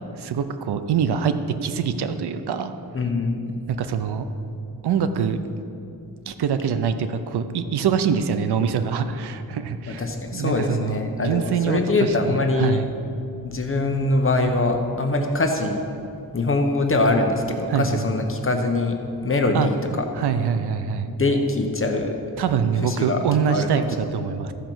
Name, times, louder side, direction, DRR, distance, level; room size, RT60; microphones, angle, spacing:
voice 1, 0.0-1.3 1.6-2.7 3.7-4.2 4.8-5.4 6.3-10.0 10.3-11.8 12.3-12.9 17.7-18.0 19.5-19.7 20.2-21.1 22.4-23.8 24.1-24.5, right 7 dB, 80° right, 10 dB, 0.7 m, -24 dB
voice 2, 2.9-3.4 9.9-12.8 13.4-15.9 16.3-19.0 19.2-20.0 21.1-22.2 22.8-23.9, left 2 dB, 35° left, 3 dB, 1.0 m, -23 dB
14.0 x 5.1 x 6.1 m, 2.7 s
cardioid pair, 85°, 39 cm